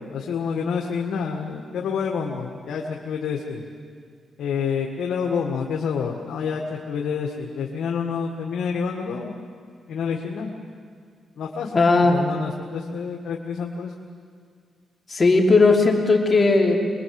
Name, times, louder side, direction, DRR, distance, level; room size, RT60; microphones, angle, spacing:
voice 1, 0.0-3.6 4.4-9.4 9.9-10.5 11.4-11.7 12.0-13.9, left 6 dB, 80° left, 0 dB, 1.9 m, -28 dB
voice 2, 11.7-12.2 15.1-16.8, left 3 dB, 35° left, 1 dB, 3.4 m, -17 dB
25.0 x 21.5 x 7.9 m, 2.1 s
cardioid pair, 90°, 0 cm